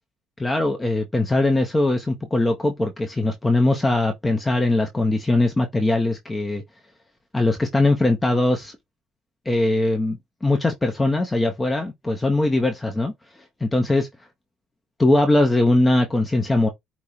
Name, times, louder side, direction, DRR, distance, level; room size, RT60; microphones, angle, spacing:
voice 1, 0.4-6.6 7.3-8.8 9.5-13.1 13.6-14.1 15.0-16.7, left 2 dB, 10° left, 0.5 m, -21 dB
4.8 x 2.0 x 4.1 m
cardioid pair, 155°, 0 cm